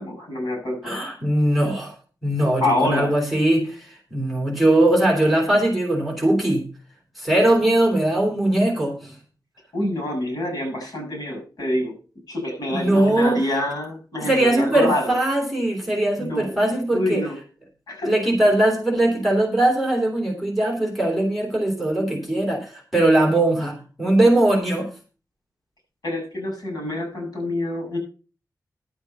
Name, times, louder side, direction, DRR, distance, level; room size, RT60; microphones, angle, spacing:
voice 1, 0.0-1.0 2.6-3.1 9.7-11.9 12.3-15.1 16.2-16.5 16.9-17.4 17.9-18.1 26.0-28.0, left 1 dB, 70° left, 3 dB, 7.4 m, -26 dB
voice 2, 0.8-1.9 2.2-6.6 7.2-9.1 12.7-13.4 14.2-17.2 18.0-24.9, right 1 dB, ahead, -1 dB, 3.3 m, -20 dB
11.5 x 8.0 x 5.5 m, 0.36 s
wide cardioid pair, 175°, 7 cm